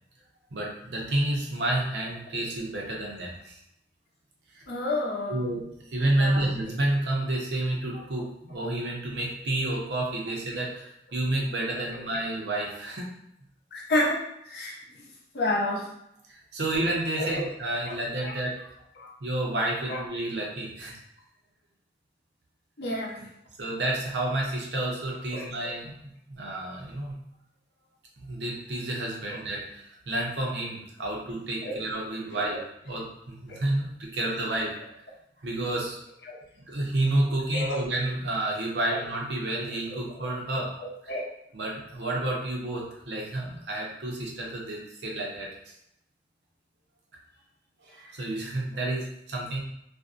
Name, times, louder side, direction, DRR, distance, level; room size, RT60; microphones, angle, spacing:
voice 1, 0.5-3.6 4.5-4.6 5.3-13.1 16.3-18.6 19.2-20.9 23.6-26.0 26.3-27.2 28.2-32.6 32.9-34.7 35.4-36.0 36.6-40.7 41.5-45.7 47.8-49.6, right 1 dB, 75° right, -2 dB, 0.6 m, -30 dB
voice 2, 4.7-5.5 6.2-6.4 13.7-14.2 14.5-14.7 15.3-15.8 17.2-17.4 17.9-18.0 18.2-18.3 19.0-19.1 19.9-20.0 22.8-23.2 25.3-25.5 31.6-31.8 32.3-32.4 36.3-36.4 37.5-37.8 39.9-40.0 40.8-41.2, left 1 dB, 65° left, -3 dB, 0.6 m, -29 dB
2.5 x 2.1 x 2.4 m, 0.78 s
head